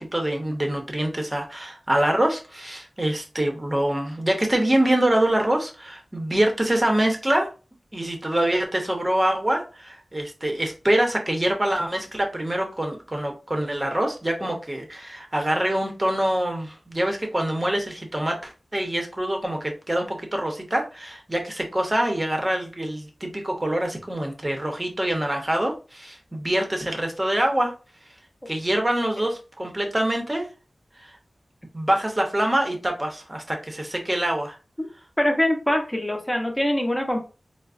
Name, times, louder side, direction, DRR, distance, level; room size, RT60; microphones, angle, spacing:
voice 1, 0.0-7.5 7.9-27.7 28.5-30.5 31.0-31.1 31.7-34.6, right 1 dB, 20° right, 3 dB, 0.8 m, -25 dB
voice 2, 35.2-37.2, left 1 dB, 10° left, 2 dB, 0.8 m, -23 dB
4.4 x 2.1 x 2.5 m, 0.33 s
wide cardioid pair, 85°, 0 cm